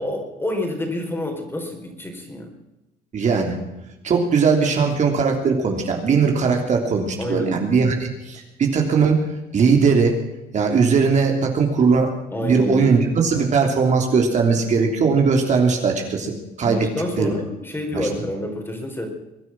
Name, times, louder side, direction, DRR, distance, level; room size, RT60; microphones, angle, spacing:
voice 1, 0.0-2.5 7.2-7.6 12.3-12.9 16.6-19.1, left 1 dB, 15° left, 3 dB, 4.5 m, -28 dB
voice 2, 3.1-3.6 4.0-9.2 9.5-10.1 10.5-12.1 12.4-16.9 17.2-17.3 17.9-18.1, right 5 dB, 45° right, 2 dB, 3.2 m, -19 dB
23.0 x 9.9 x 6.0 m, 0.97 s
cardioid pair, 110°, 17 cm